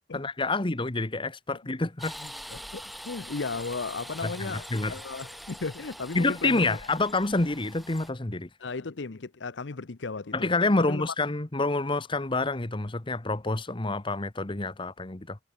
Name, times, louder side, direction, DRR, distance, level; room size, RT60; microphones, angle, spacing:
voice 1, 0.1-2.1 4.2-4.9 6.1-8.5 10.3-15.4, left 2 dB, 25° left, 1.1 m, -28 dB
sound 1, 2.0-8.1, equal, ahead, 1.1 m, -44 dB
voice 2, 2.2-6.8 8.6-10.5 10.8-11.0, left 4 dB, 70° left, 0.8 m, -36 dB
head